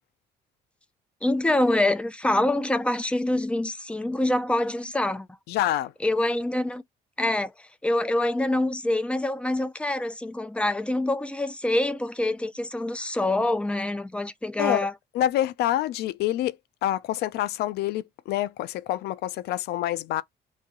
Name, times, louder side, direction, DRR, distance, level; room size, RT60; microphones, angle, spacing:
voice 1, 1.2-5.3 6.0-6.8 7.2-7.5 7.8-14.9, left 1 dB, 5° left, 0.5 m, -25 dB
voice 2, 5.5-5.9 14.6-14.9 15.1-16.6 16.8-20.2, left 13 dB, 75° left, 0.4 m, -26 dB
3.1 x 2.6 x 3.7 m
cardioid pair, 110°, 17 cm